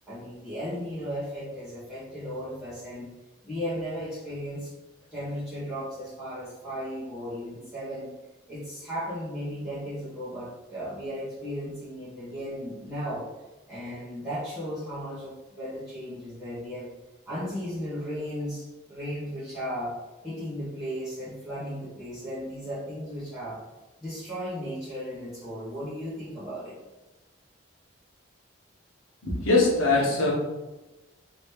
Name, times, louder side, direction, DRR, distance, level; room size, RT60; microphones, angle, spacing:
voice 1, 0.1-3.1 3.4-4.7 5.1-8.1 8.5-13.3 13.7-16.9 17.3-19.9 20.2-23.6 24.0-26.8, equal, 5° right, -15 dB, 1.1 m, -35 dB
voice 2, 29.2-30.3, left 3 dB, 90° left, -3 dB, 1.0 m, -22 dB
3.1 x 2.9 x 3.3 m, 1.1 s
head